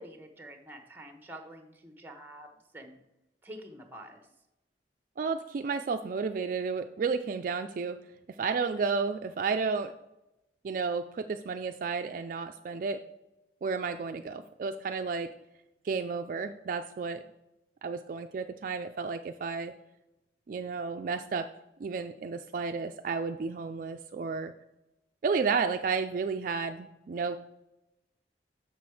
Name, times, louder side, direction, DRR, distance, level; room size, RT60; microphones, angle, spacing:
voice 1, 0.0-2.5 2.7-3.0 3.4-4.2, right 1 dB, 10° right, 5 dB, 0.9 m, -47 dB
voice 2, 5.2-8.0 8.4-9.9 10.6-13.0 13.6-15.3 15.8-17.2 17.8-19.7 20.5-21.5 21.8-24.5 25.2-27.4, right 5 dB, 50° right, 7 dB, 0.3 m, -32 dB
6.7 x 6.0 x 4.8 m, 0.92 s
head